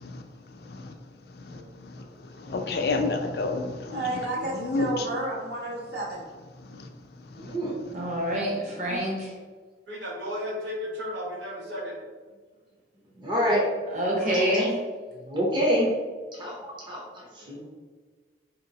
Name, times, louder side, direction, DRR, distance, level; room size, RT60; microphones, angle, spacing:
voice 1, 2.5-4.0 4.6-4.9 6.8-6.9, left 3 dB, 60° left, 5 dB, 0.4 m, -29 dB
voice 2, 3.9-6.3, right 2 dB, 60° right, -6 dB, 1.3 m, -31 dB
voice 3, 7.3-7.8 8.8-9.0 13.2-13.7 14.2-14.7 15.2-15.9 16.3-16.6 16.8-17.0 17.3-17.6, equal, 25° right, -4 dB, 0.7 m, -27 dB
voice 4, 7.9-9.3 13.9-14.7, equal, 40° right, -3 dB, 1.0 m, -26 dB
voice 5, 9.9-12.0, left 1 dB, 85° right, -2 dB, 1.0 m, -34 dB
4.5 x 2.9 x 2.7 m, 1.4 s
head